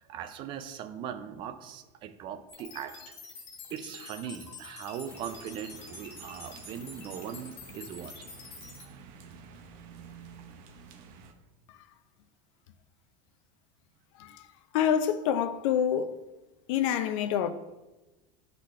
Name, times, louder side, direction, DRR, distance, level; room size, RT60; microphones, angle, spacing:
voice 1, 0.0-2.9 3.7-8.3 8.8-9.1, right 9 dB, 30° right, 0.3 m, -40 dB
sound 1, 2.5-8.9, left 3 dB, 30° left, 1.7 m, -47 dB
sound 2, 5.1-11.3, right 5 dB, 50° right, 0.7 m, -50 dB
voice 2, 14.2-14.5 14.7-16.2 16.7-17.5, left 9 dB, 65° left, 0.5 m, -27 dB
10.0 x 4.1 x 3.2 m
supercardioid pair, 165°, 17 cm